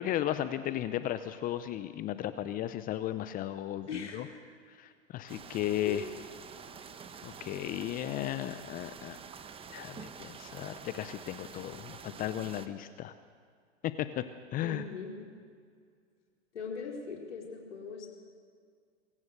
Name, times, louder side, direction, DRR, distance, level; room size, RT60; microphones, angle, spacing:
voice 1, 0.0-4.3 4.7-6.0 7.2-9.2 9.7-13.1 13.8-14.2 14.5-14.8, left 12 dB, 25° left, 12 dB, 0.7 m, -35 dB
voice 2, 3.9-4.4 5.8-6.1 14.6-15.1 16.5-18.1, left 5 dB, 70° left, -1 dB, 4.8 m, -40 dB
sound 1, 5.3-12.7, right 6 dB, 15° right, 1.1 m, -48 dB
24.0 x 17.0 x 6.6 m, 2.1 s
hypercardioid pair, 115°, 36 cm